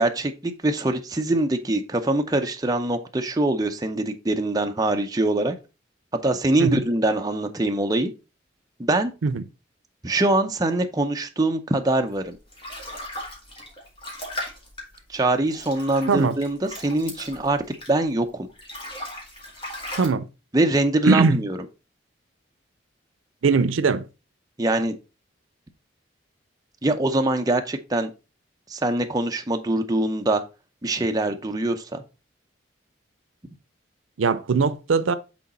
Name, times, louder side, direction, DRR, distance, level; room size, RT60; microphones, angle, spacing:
voice 1, 0.0-5.6 6.2-8.1 8.8-9.1 10.0-12.4 15.1-18.5 20.5-21.6 24.6-25.0 26.8-28.1 28.7-30.4 30.8-32.0, right 2 dB, 20° right, 0.5 m, -23 dB
sound 1, 12.1-18.2 18.5-20.1, left 1 dB, 25° left, 1.9 m, -37 dB
voice 2, 20.0-20.3 21.1-21.4 23.4-24.0 34.2-35.1, right 4 dB, 85° right, 0.5 m, -20 dB
6.2 x 3.9 x 4.1 m
head